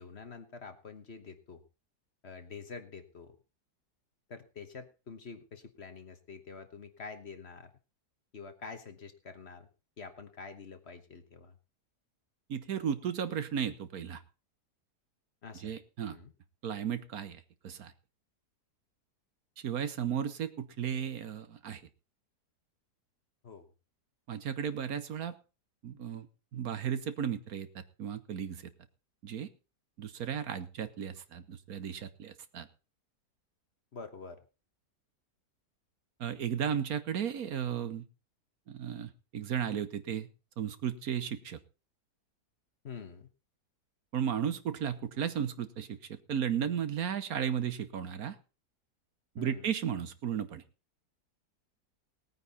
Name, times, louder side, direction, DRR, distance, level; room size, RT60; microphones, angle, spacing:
voice 1, 0.0-1.6 2.2-3.4 4.3-7.7 8.3-9.7 10.0-11.6 15.4-15.7 16.0-16.3 23.4-23.7 33.9-34.4 42.8-43.3 49.4-49.7, left 5 dB, 45° left, 9 dB, 1.3 m, -47 dB
voice 2, 12.5-14.2 15.6-16.2 16.6-17.9 19.6-21.8 24.3-25.4 25.8-26.3 26.5-28.7 29.2-29.5 30.0-32.7 36.2-38.1 38.7-40.3 40.6-41.6 44.1-48.4 49.3-50.6, right 8 dB, 65° right, 13 dB, 1.4 m, -34 dB
18.5 x 9.4 x 4.1 m, 0.32 s
omnidirectional pair, 1.7 m